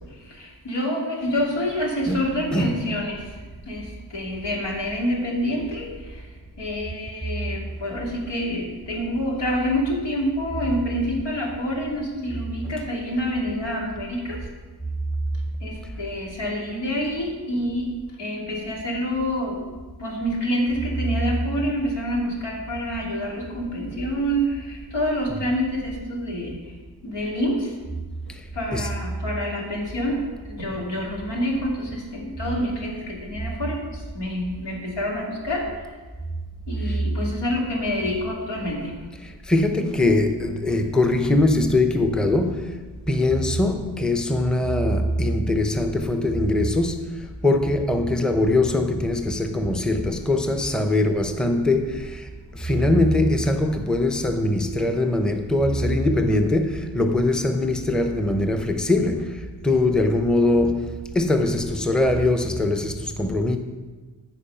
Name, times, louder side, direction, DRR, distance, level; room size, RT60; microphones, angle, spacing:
voice 1, 0.0-3.3 3.7-14.5 15.6-17.9 18.2-19.6 20.0-26.6 27.0-27.7 28.5-35.9 36.7-39.0, equal, 80° left, 2.7 m, -27 dB
voice 2, 2.1-2.9 25.4-25.5 28.7-28.9 36.8-37.0 39.2-42.8 43.1-52.3 52.5-63.6, left 2 dB, ahead, 0.7 m, -22 dB
14.5 x 4.8 x 5.6 m
cardioid pair, 70°, 41 cm